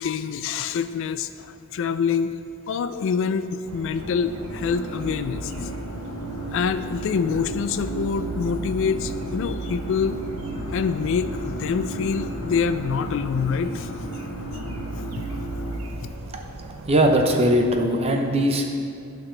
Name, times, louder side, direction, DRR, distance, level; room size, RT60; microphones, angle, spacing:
voice 1, 0.0-2.4 2.7-6.0 6.5-10.2 10.7-13.9 14.5-14.6 15.3-15.4, left 6 dB, 60° left, 11 dB, 0.3 m, -26 dB
sound 1, 3.6-17.7, right 2 dB, 75° right, 0.6 m, -39 dB
sound 2, 3.9-15.8, right 1 dB, 85° left, 1.2 m, -33 dB
voice 2, 16.9-18.7, right 1 dB, 30° right, 3 dB, 0.6 m, -20 dB
11.5 x 5.8 x 3.3 m, 2.4 s
head